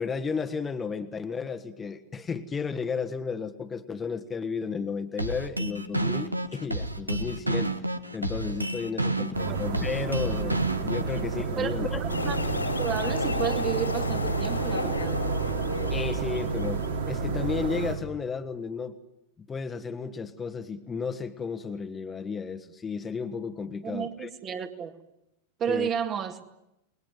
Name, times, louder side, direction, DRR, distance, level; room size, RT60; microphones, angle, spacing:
voice 1, 0.0-7.7 8.1-12.0 15.9-19.0 19.4-24.3 25.7-25.9, left 5 dB, 15° left, 1.5 m, -33 dB
sound 1, 5.2-11.2, right 2 dB, 85° right, 1.4 m, -30 dB
sound 2, 9.3-18.0, right 4 dB, 70° right, 4.0 m, -30 dB
voice 2, 12.0-12.4 12.8-15.2 23.8-25.0 25.6-26.6, right 8 dB, 30° right, 2.2 m, -32 dB
sound 3, 12.1-17.0, left 2 dB, 80° left, 4.0 m, -32 dB
29.0 x 21.0 x 9.3 m
figure-of-eight pair, 90°, 0 cm